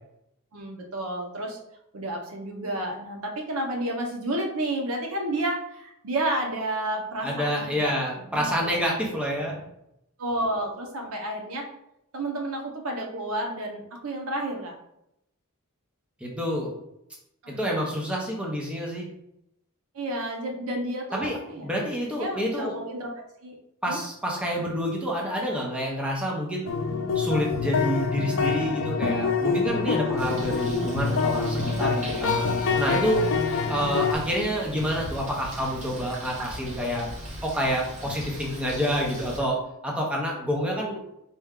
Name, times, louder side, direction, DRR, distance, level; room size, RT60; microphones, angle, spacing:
voice 1, 0.5-1.6 1.9-7.9 8.3-8.8 10.2-11.7 12.1-14.7 17.4-17.6 19.9-21.7 22.2-23.1 23.4-23.6 23.9-24.0 32.7-33.1, right 1 dB, 65° right, 2 dB, 0.7 m, -31 dB
voice 2, 7.2-9.6 16.2-16.7 17.5-19.1 21.1-22.7 23.8-26.7 27.1-32.4 32.8-33.2 33.7-37.1 37.4-39.6 39.8-41.0, equal, 5° right, -2 dB, 0.7 m, -28 dB
sound 1, 26.7-34.1, left 4 dB, 55° left, 0.5 m, -26 dB
Bird, 30.2-39.4, right 1 dB, 35° right, 1.2 m, -40 dB
4.2 x 2.3 x 3.6 m, 0.82 s
head